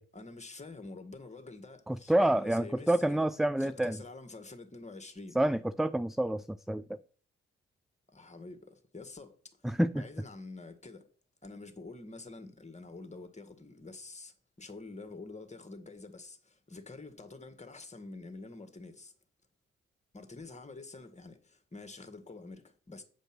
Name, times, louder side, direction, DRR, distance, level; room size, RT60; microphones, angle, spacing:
voice 1, 0.1-3.3 3.6-5.4 8.1-11.1 11.4-19.1 20.1-23.0, left 3 dB, 25° left, 2.1 m, -47 dB
voice 2, 1.9-4.0 5.4-6.8 9.6-9.9, right 1 dB, ahead, 0.4 m, -28 dB
9.0 x 5.2 x 6.1 m
hypercardioid pair, 45°, 30 cm